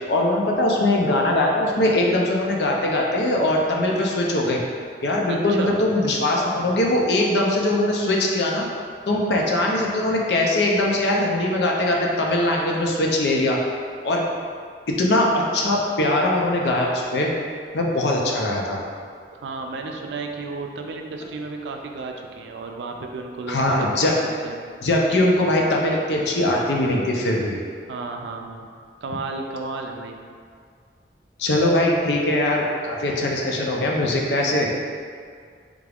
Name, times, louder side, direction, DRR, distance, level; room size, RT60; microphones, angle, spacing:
voice 1, 0.1-4.6 5.0-8.7 9.1-13.6 14.0-14.2 14.9-17.3 17.7-18.8 23.5-24.1 24.8-27.6 31.4-34.7, left 1 dB, 70° left, -1 dB, 0.5 m, -21 dB
voice 2, 5.3-5.8 19.3-24.2 24.4-24.5 27.9-28.7 29.0-30.2, right 3 dB, 75° right, 3 dB, 0.4 m, -33 dB
3.5 x 2.4 x 3.4 m, 2.1 s
head